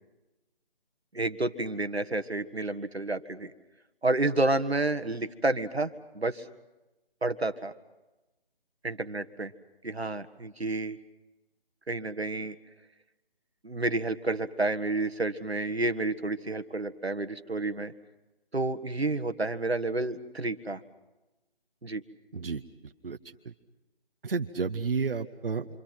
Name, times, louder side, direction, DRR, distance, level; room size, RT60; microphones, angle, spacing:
voice 1, 1.1-3.5 4.0-6.5 7.2-7.7 8.8-9.5 9.8-11.0 11.9-12.5 13.6-17.9 18.5-20.8 21.8-22.0, right 2 dB, 90° right, 9 dB, 1.7 m, -30 dB
voice 2, 22.3-23.2 23.4-23.5 24.2-25.7, right 5 dB, 65° right, 6 dB, 1.2 m, -32 dB
27.5 x 25.5 x 5.9 m, 1.0 s
figure-of-eight pair, 155°, 31 cm